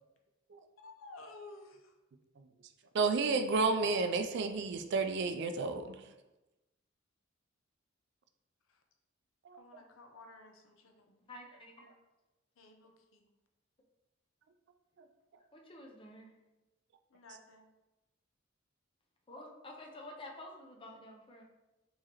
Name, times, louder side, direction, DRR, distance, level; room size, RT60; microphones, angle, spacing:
voice 1, 0.8-1.9 8.7-8.8 9.5-11.1 12.6-13.3 17.1-17.7, left 2 dB, 85° left, 4 dB, 0.6 m, -54 dB
voice 2, 2.9-6.1 9.5-9.6 15.0-15.1, right 4 dB, 60° right, 8 dB, 0.4 m, -31 dB
voice 3, 11.2-11.9 15.5-16.4 19.3-21.4, left 1 dB, 25° left, 1 dB, 0.6 m, -50 dB
4.7 x 2.9 x 2.9 m, 1.0 s
head